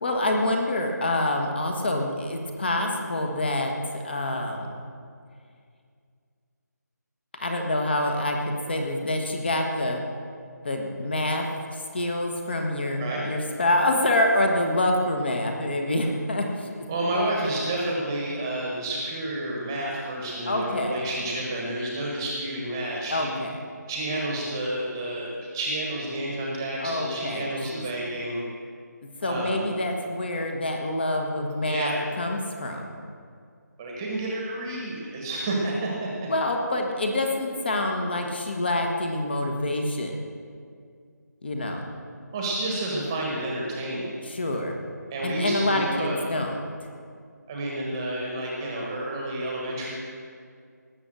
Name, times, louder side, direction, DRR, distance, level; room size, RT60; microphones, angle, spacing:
voice 1, 0.0-4.7 7.4-10.0 10.6-11.5 11.9-16.9 20.5-21.1 23.1-23.6 26.8-27.8 29.2-32.8 36.3-40.1 41.4-41.8 44.2-44.8 45.2-46.6, left 1 dB, 35° left, 3 dB, 1.6 m, -26 dB
voice 2, 16.9-23.4 23.9-28.4 29.2-29.7 31.6-32.0 33.8-36.3 42.3-44.1 45.1-46.2 47.5-49.9, right 1 dB, 10° right, -2 dB, 1.4 m, -30 dB
18.5 x 7.2 x 7.6 m, 2.2 s
figure-of-eight pair, 175°, 10 cm